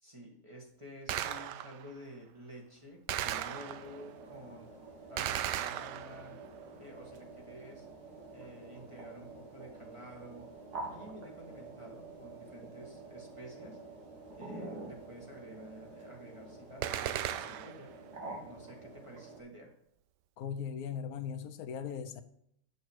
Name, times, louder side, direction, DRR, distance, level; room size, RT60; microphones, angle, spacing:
voice 1, 0.0-4.7 5.1-6.4 6.8-7.8 8.3-10.5 10.9-13.8 14.4-17.9 18.4-19.7, equal, 20° right, -1 dB, 1.7 m, -50 dB
Gunshot gunfire, 1.1-1.9 3.1-4.1 5.2-6.4 16.8-17.9, right 11 dB, 85° right, 1.2 m, -36 dB
sound 1, 3.2-19.4, right 2 dB, 70° right, 2.6 m, -48 dB
voice 2, 20.4-22.2, left 7 dB, 65° left, 11 dB, 1.1 m, -38 dB
8.9 x 6.7 x 4.6 m, 0.71 s
omnidirectional pair, 1.8 m